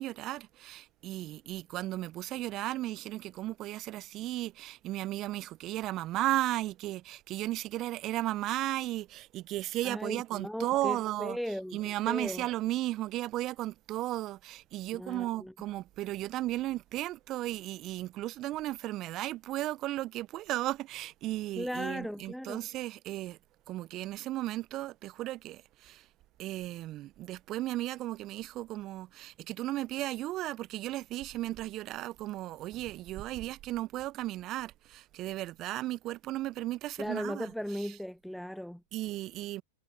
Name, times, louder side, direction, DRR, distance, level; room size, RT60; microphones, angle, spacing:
voice 1, 0.0-11.4 11.7-23.4 23.7-26.1 26.4-38.0 38.9-39.6, right 16 dB, 35° right, 0.9 m, -35 dB
voice 2, 9.8-11.8 12.1-12.4 14.9-15.5 21.6-22.6 37.0-38.8, equal, ahead, 0.4 m, -37 dB
figure-of-eight pair, 100°, 0 cm